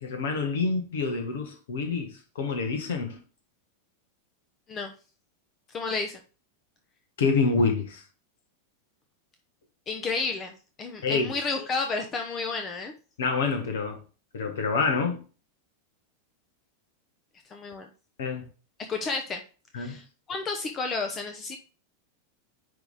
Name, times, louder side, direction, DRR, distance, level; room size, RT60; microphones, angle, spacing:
voice 1, 0.0-3.2 7.2-8.0 11.0-11.3 13.2-14.0 14.3-15.2 18.2-18.5 19.7-20.0, left 4 dB, 60° left, 1.5 m, -27 dB
voice 2, 5.7-6.2 9.9-10.5 10.8-12.9 17.5-17.9 18.9-19.4 19.7-20.0 20.3-21.6, left 4 dB, 25° left, 0.9 m, -31 dB
10.0 x 3.4 x 3.6 m
figure-of-eight pair, 90°, 0 cm